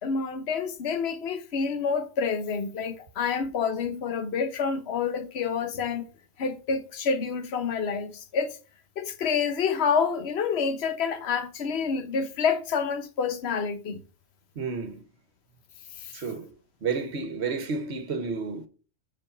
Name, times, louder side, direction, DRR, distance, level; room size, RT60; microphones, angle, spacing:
voice 1, 0.0-6.0 6.4-8.5 9.0-14.0, left 6 dB, 55° left, 1.2 m, -28 dB
voice 2, 14.5-15.0 16.1-16.5 16.8-18.7, right 5 dB, 55° right, 1.4 m, -31 dB
5.8 x 5.3 x 6.7 m
omnidirectional pair, 1.3 m